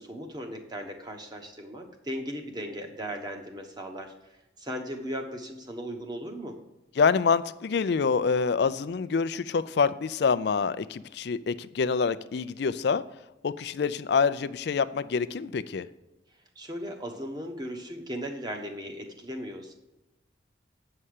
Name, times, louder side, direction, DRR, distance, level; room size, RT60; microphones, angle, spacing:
voice 1, 0.0-4.1 4.6-6.6 16.6-19.7, equal, 20° right, 3 dB, 1.1 m, -37 dB
voice 2, 7.0-13.0 13.4-15.9, left 5 dB, 55° left, 14 dB, 0.4 m, -26 dB
8.6 x 5.6 x 6.5 m, 0.98 s
head